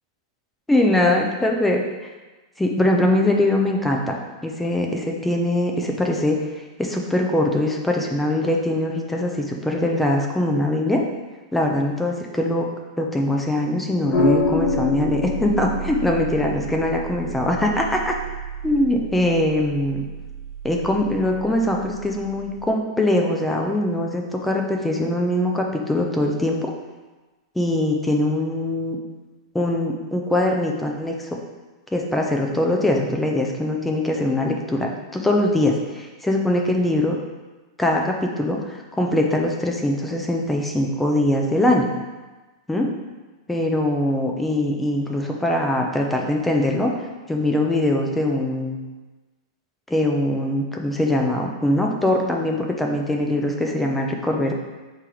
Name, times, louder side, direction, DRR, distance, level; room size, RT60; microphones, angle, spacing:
voice 1, 0.7-1.8 2.6-4.1 4.4-6.4 6.8-11.0 11.5-12.7 13.0-18.2 18.6-20.0 20.6-26.7 27.6-29.0 29.5-31.4 31.9-37.2 37.8-41.9 42.7-42.9 43.5-48.8 49.9-54.5, left 1 dB, 5° left, 1 dB, 0.4 m, -22 dB
sound 1, 14.1-22.7, left 1 dB, 40° left, 0.9 m, -28 dB
4.4 x 3.0 x 3.8 m, 1.2 s
supercardioid pair, 165°, 3 cm